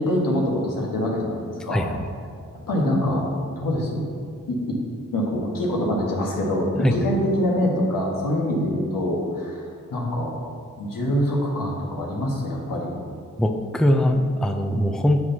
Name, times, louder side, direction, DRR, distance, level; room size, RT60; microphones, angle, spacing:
voice 1, 0.0-1.8 2.7-3.3 3.6-4.0 4.5-4.8 5.1-10.4 10.8-13.0, left 1 dB, 80° left, -2 dB, 1.5 m, -24 dB
voice 2, 1.7-2.1 6.8-6.9 13.4-15.2, equal, ahead, 5 dB, 0.5 m, -21 dB
9.4 x 5.9 x 2.9 m, 2.2 s
cardioid pair, 55°, 33 cm